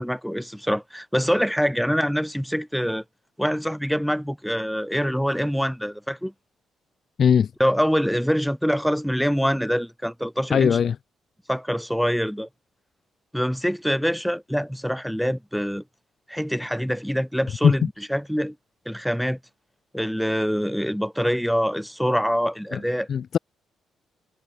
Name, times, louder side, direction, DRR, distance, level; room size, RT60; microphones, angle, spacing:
voice 1, 0.0-3.0 3.4-6.3 7.6-10.8 11.5-12.5 13.3-15.8 16.3-18.5 18.9-19.4 19.9-23.1, equal, ahead, 2.7 m, -25 dB
voice 2, 7.2-7.5 10.5-11.0 17.6-17.7 22.7-22.8 23.1-23.4, left 7 dB, 50° left, 0.5 m, -19 dB
cardioid pair, 120°, 0 cm